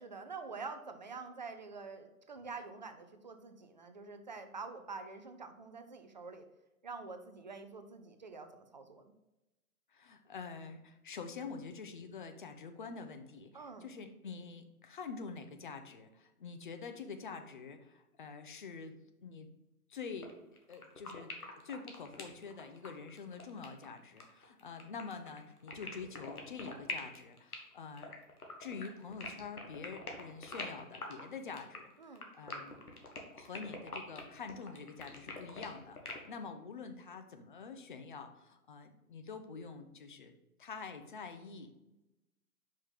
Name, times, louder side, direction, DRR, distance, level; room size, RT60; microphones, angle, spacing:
voice 1, 0.0-6.5 6.8-9.1 13.5-13.9 32.0-32.3, right 4 dB, 30° right, 7 dB, 0.4 m, -47 dB
voice 2, 9.9-19.0 19.2-19.5 19.9-20.3 20.7-21.3 21.6-28.1 28.6-31.9 32.3-32.8 33.3-40.3 40.6-41.7, left 5 dB, 35° left, 7 dB, 0.6 m, -46 dB
sound 1, 20.2-20.3 20.6-36.2, left 3 dB, 75° left, 1.5 m, -45 dB
5.5 x 5.2 x 3.4 m, 0.97 s
figure-of-eight pair, 125°, 45 cm